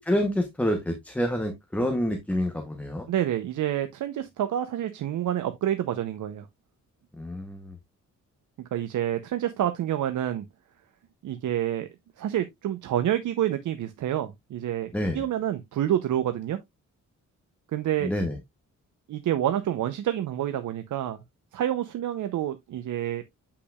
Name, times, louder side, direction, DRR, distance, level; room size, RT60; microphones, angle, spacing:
voice 1, 0.1-3.1 7.1-7.8 14.9-15.2 18.0-18.4, equal, 5° left, 0.9 m, -27 dB
voice 2, 3.1-6.5 8.6-10.5 11.2-11.9 12.2-16.6 17.7-18.1 19.1-21.2 21.5-23.2, right 11 dB, 80° right, 0.8 m, -28 dB
8.2 x 5.8 x 2.4 m
wide cardioid pair, 175°, 30 cm